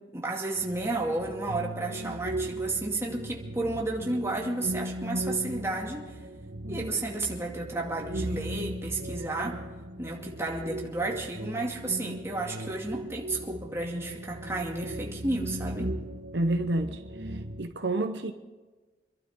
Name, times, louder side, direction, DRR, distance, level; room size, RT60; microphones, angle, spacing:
voice 1, 0.1-6.2 6.7-9.6 10.0-16.0, right 2 dB, 15° right, 2.4 m, -32 dB
sound 1, 0.5-17.7, right 1 dB, 85° right, 1.3 m, -37 dB
voice 2, 16.3-17.0 17.6-18.3, right 2 dB, 65° right, 0.9 m, -28 dB
26.5 x 12.0 x 3.8 m
head